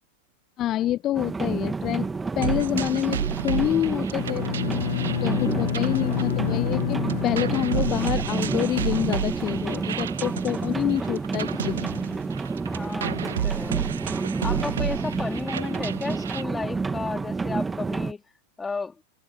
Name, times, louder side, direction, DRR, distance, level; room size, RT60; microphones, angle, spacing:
voice 1, 0.6-2.1 2.4-4.7 5.2-11.9, left 13 dB, 30° left, 0.5 m, -27 dB
sound 1, 1.1-18.1, right 4 dB, 10° right, 1.5 m, -29 dB
sound 2, 2.4-6.8 7.1-16.4, right 10 dB, 65° right, 1.7 m, -32 dB
Bowed string instrument, 4.1-8.8, left 11 dB, 60° left, 1.5 m, -29 dB
voice 2, 12.7-13.9 14.4-18.2 18.6-19.0, left 4 dB, 15° left, 3.2 m, -33 dB
figure-of-eight pair, 90°, 0 cm